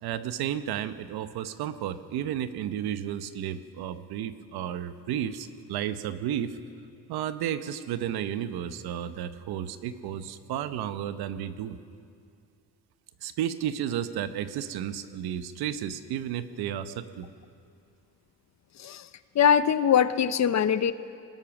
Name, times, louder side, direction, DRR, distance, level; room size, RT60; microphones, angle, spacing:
voice 1, 0.0-6.6 7.1-11.8 13.2-17.3, right 10 dB, 85° right, 11 dB, 1.0 m, -32 dB
voice 2, 19.3-20.9, left 8 dB, 45° left, 13 dB, 0.8 m, -22 dB
23.0 x 20.0 x 6.0 m, 2.5 s
cardioid pair, 105°, 37 cm